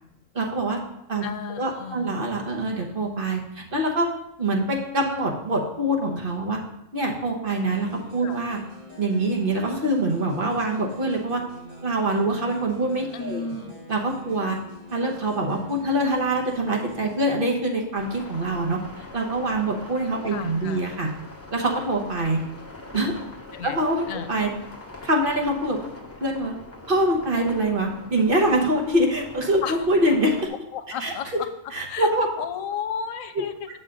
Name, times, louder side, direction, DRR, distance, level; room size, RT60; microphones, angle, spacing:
voice 1, 0.3-0.8 1.1-1.2 1.6-4.1 4.4-6.6 6.9-8.6 9.0-11.4 11.8-13.5 13.9-14.6 14.9-18.8 19.1-21.1 21.5-22.4 22.9-23.1 23.6-24.5 25.0-25.8 26.2-26.5 26.9-30.5 31.0-31.1 31.7-32.3 33.3-33.4, right 1 dB, 45° right, 0 dB, 1.3 m, -24 dB
voice 2, 1.2-2.1 8.2-8.4 13.1-13.7 20.3-20.8 23.5-23.8 24.1-24.3 29.6-29.8 30.7-31.5 31.9-32.1 32.4-33.7, left 6 dB, 85° left, 10 dB, 1.0 m, -33 dB
sound 1, 7.4-17.3, equal, 75° right, 3.1 m, -45 dB
sound 2, 18.0-30.5, left 2 dB, 10° left, 1.1 m, -43 dB
8.2 x 6.7 x 3.8 m, 0.82 s
omnidirectional pair, 1.4 m